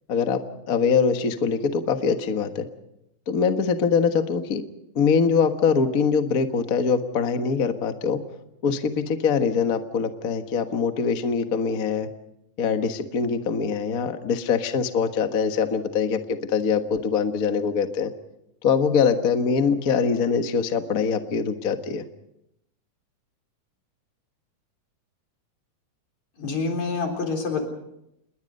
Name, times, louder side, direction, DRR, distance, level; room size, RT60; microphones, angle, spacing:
voice 1, 0.1-0.4 0.7-2.6 3.3-4.6 4.9-8.2 8.6-12.1 12.6-16.2 16.5-18.1 18.6-22.0, left 6 dB, 45° left, 7 dB, 1.2 m, -23 dB
voice 2, 26.4-27.7, left 4 dB, 60° left, 3 dB, 5.1 m, -27 dB
28.5 x 21.0 x 5.4 m, 0.82 s
omnidirectional pair, 3.6 m